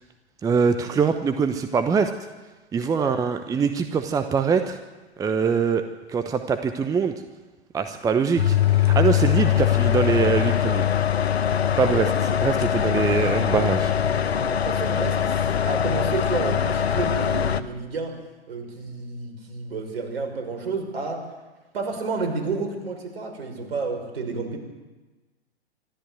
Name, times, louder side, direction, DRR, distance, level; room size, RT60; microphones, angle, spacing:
voice 1, 0.4-2.1 2.7-4.8 5.2-7.1 7.7-10.8 11.8-12.1 12.4-13.9, right 5 dB, 10° right, 9 dB, 0.9 m, -23 dB
sound 1, 8.4-17.6, left 9 dB, 65° left, 1.1 m, -22 dB
voice 2, 11.9-12.3 14.6-18.2 18.5-21.2 21.7-24.6, right 4 dB, 60° right, 4 dB, 5.7 m, -31 dB
25.5 x 13.5 x 8.0 m, 1.2 s
figure-of-eight pair, 105°, 34 cm